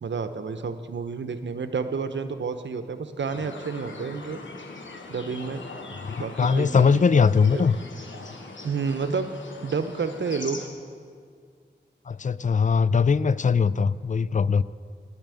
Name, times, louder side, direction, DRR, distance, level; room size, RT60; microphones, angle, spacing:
voice 1, 0.0-4.4 5.1-5.6 6.2-7.0 7.5-7.7 8.6-9.3 9.6-10.6, right 5 dB, 80° right, 9 dB, 0.7 m, -30 dB
sound 1, 3.3-10.7, left 3 dB, 90° left, 1.2 m, -41 dB
voice 2, 6.0-7.8 12.1-14.6, left 5 dB, 40° left, 18 dB, 0.4 m, -21 dB
10.0 x 8.9 x 9.0 m, 2.1 s
cardioid pair, 45°, 19 cm